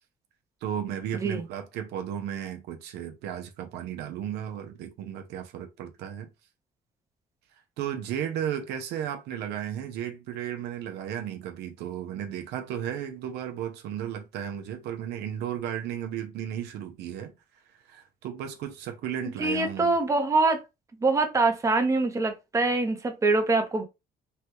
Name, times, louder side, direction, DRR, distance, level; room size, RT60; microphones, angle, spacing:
voice 1, 0.6-6.3 7.8-17.3 17.7-20.0, right 10 dB, 80° right, 0.6 m, -34 dB
voice 2, 19.4-20.6 21.0-23.8, right 3 dB, 20° right, 0.7 m, -24 dB
3.2 x 2.2 x 2.9 m
cardioid pair, 110°, 17 cm